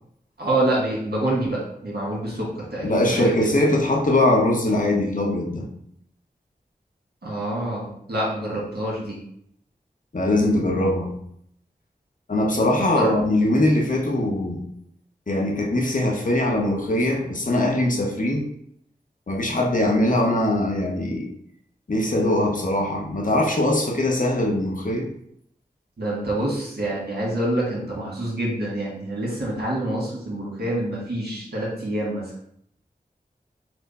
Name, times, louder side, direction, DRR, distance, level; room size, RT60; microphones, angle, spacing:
voice 1, 0.4-3.6 7.2-9.2 12.9-13.2 26.0-32.3, right 1 dB, 80° right, -5 dB, 1.6 m, -26 dB
voice 2, 2.8-5.7 10.1-11.1 12.3-14.6 15.3-18.4 19.3-21.3 21.9-25.1, left 1 dB, 55° left, 0 dB, 0.9 m, -21 dB
4.4 x 2.1 x 4.1 m, 0.70 s
cardioid pair, 40°, 16 cm